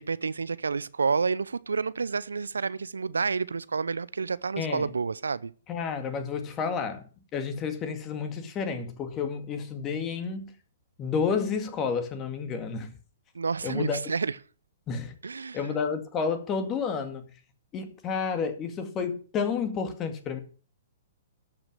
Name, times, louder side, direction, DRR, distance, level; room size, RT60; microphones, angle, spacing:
voice 1, 0.0-5.5 13.3-14.4 15.2-15.7, right 5 dB, 80° right, 0.6 m, -29 dB
voice 2, 4.6-4.9 5.7-7.0 7.3-10.5 11.0-12.9 13.6-14.0 14.9-15.1 15.5-17.3 17.7-20.4, left 5 dB, 25° left, 2.1 m, -30 dB
13.0 x 6.0 x 7.5 m
figure-of-eight pair, 120°, 0 cm